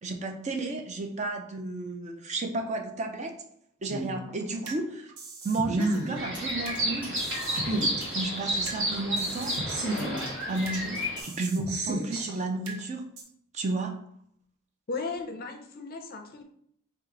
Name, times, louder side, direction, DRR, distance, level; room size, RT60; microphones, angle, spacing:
voice 1, 0.0-3.3 3.8-5.1 5.4-7.2 8.1-9.7 10.5-13.1 13.5-13.9, right 2 dB, 35° right, 4 dB, 0.4 m, -32 dB
sound 1, 3.9-4.8 5.2-6.8 7.2-8.8 9.2-10.8 11.2-12.8 13.2-13.3, right 2 dB, 80° right, 0.8 m, -33 dB
sound 2, 5.5-11.3, equal, 10° right, 1.6 m, -47 dB
sound 3, 6.1-11.2, equal, 60° right, 1.4 m, -31 dB
voice 2, 14.9-16.4, left 4 dB, 45° left, 4 dB, 0.5 m, -36 dB
4.4 x 2.3 x 3.7 m, 0.67 s
head